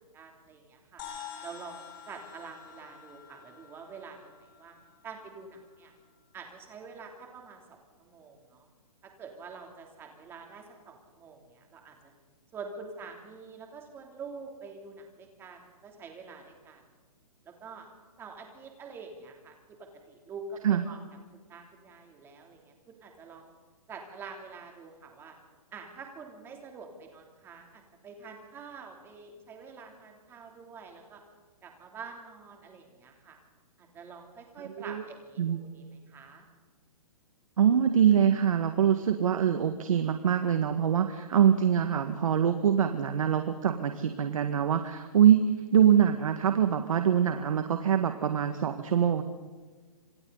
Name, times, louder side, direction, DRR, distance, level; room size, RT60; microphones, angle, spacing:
voice 1, 0.1-1.0 1.4-4.8 5.0-5.9 6.3-8.7 9.0-12.1 12.5-16.8 17.4-17.9 18.2-21.0 21.3-23.5 23.9-25.4 25.7-31.2 31.6-33.4 33.8-36.4, right 4 dB, 10° right, 2 dB, 3.2 m, -46 dB
sound 1, 1.0-5.6, left 8 dB, 35° left, 5.2 m, -48 dB
voice 2, 37.6-45.4 45.7-49.2, right 9 dB, 65° right, 7 dB, 1.9 m, -24 dB
27.0 x 27.0 x 4.1 m, 1.4 s
hypercardioid pair, 165°, 19 cm